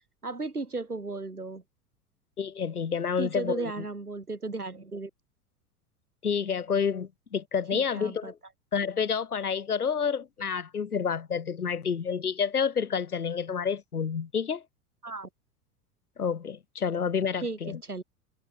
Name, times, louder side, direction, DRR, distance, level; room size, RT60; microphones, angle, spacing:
voice 1, 0.2-1.6 3.2-5.1 7.7-8.3 15.0-15.3 17.4-17.6 17.9-18.0, right 3 dB, 90° right, 4.3 m, -35 dB
voice 2, 2.4-3.8 6.2-8.4 8.7-14.6 16.2-17.8, left 6 dB, 85° left, 1.6 m, -29 dB
figure-of-eight pair, 90°, 44 cm